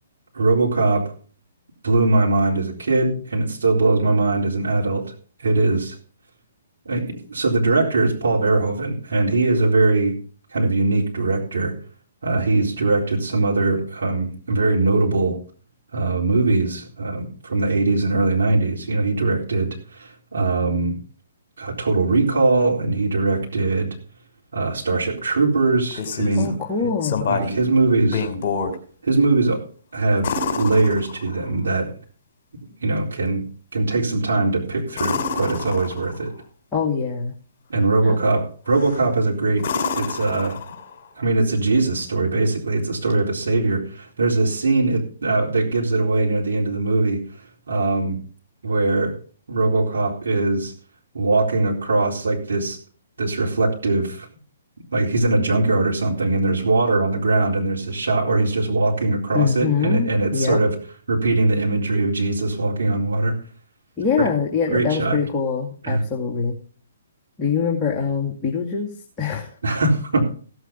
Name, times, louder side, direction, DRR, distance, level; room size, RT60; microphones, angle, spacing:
voice 1, 0.3-1.1 1.8-5.1 5.4-5.9 6.9-10.1 10.5-11.7 12.2-15.4 15.9-21.0 21.6-24.0 24.5-26.5 27.3-28.3 29.0-29.6 29.9-31.9 32.8-33.4 33.7-36.3 37.7-39.6 39.9-40.6 41.2-47.2 47.7-48.2 48.6-49.2 49.5-50.7 51.1-52.8 53.2-54.3 54.9-60.8 61.1-63.4 64.7-65.2 65.8-66.0 69.6-70.3, right 2 dB, 70° right, -3 dB, 4.1 m, -21 dB
sound 1, 25.7-26.5 27.0-27.6 28.0-28.8 30.2-31.5 34.9-36.2 38.7-39.1 39.6-41.0 43.1-43.2, left 5 dB, 45° left, 2.9 m, -27 dB
voice 2, 26.3-27.3 36.7-37.3 38.0-38.2 59.3-60.6 64.0-66.6 67.4-68.9 69.2-69.5, left 6 dB, 20° left, -2 dB, 2.3 m, -23 dB
16.5 x 8.1 x 5.3 m, 0.42 s
figure-of-eight pair, 130°, 0 cm